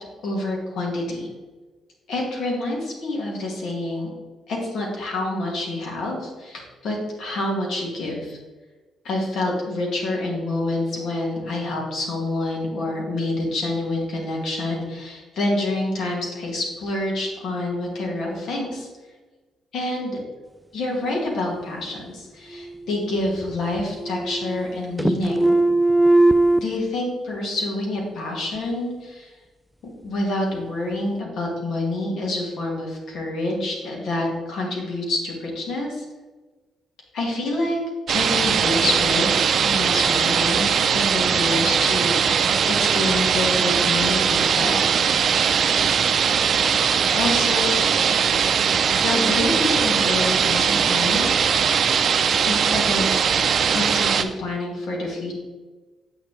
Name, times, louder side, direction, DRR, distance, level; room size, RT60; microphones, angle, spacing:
voice 1, 0.2-1.3 2.1-4.1 4.5-8.4 9.0-18.9 19.7-20.2 20.7-25.6 26.6-29.3 29.8-36.0 37.1-37.8 38.1-44.9 47.1-47.7 48.7-51.3 52.4-55.3, left 2 dB, 70° left, -1 dB, 2.2 m, -27 dB
sound 1, 22.5-23.5 23.8-24.7 25.0-26.6, right 2 dB, ahead, 0.4 m, -19 dB
sound 2, 38.1-54.2, right 7 dB, 55° right, 0.5 m, -20 dB
7.9 x 6.8 x 3.2 m, 1.3 s
cardioid pair, 90°, 0 cm